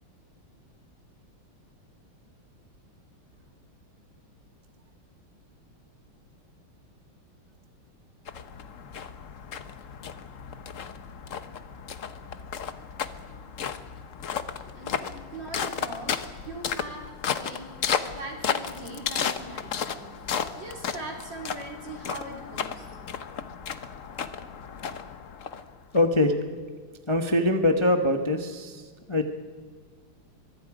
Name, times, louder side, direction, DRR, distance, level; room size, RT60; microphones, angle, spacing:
sound 1, 8.3-26.0, left 7 dB, 50° left, 1.0 m, -34 dB
voice 1, 14.6-23.0, right 2 dB, 60° right, 0 dB, 4.7 m, -41 dB
voice 2, 25.9-26.3 27.1-28.8 29.1-29.3, left 1 dB, 15° left, 4 dB, 1.0 m, -23 dB
25.0 x 23.0 x 5.1 m, 1.5 s
omnidirectional pair, 2.3 m